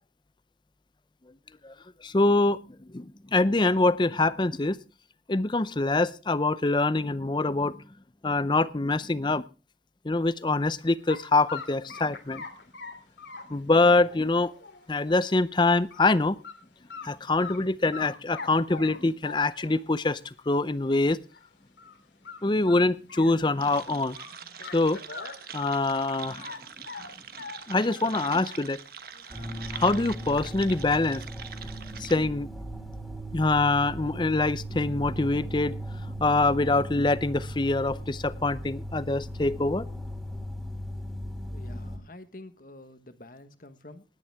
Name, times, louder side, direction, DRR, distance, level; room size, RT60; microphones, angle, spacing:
voice 1, 2.0-2.6 2.9-4.8 5.3-7.8 8.2-9.4 10.0-12.4 13.5-14.5 14.9-16.4 17.0-21.2 22.4-24.2 24.7-25.0 25.5-26.5 27.7-28.8 29.7-31.2 32.0-32.5 33.3-35.7 36.0-39.9, left 2 dB, 25° left, 17 dB, 0.6 m, -24 dB
sound 1, 11.1-11.2 11.5-15.3 15.7-16.1 16.4-16.5 16.9-17.6 17.9-19.9 20.5-20.6 20.9-21.0 21.3-21.4 21.8-22.0 22.2-23.8 24.2-26.6 26.9-28.7 29.1-29.8, left 4 dB, 70° left, 2.9 m, -42 dB
sound 2, 23.6-32.2, right 8 dB, 50° right, 1.2 m, -44 dB
sound 3, 29.3-42.0, right 1 dB, ahead, 2.8 m, -37 dB
voice 2, 41.5-44.0, left 2 dB, 45° left, 11 dB, 1.3 m, -48 dB
19.5 x 10.0 x 3.5 m, 0.32 s
head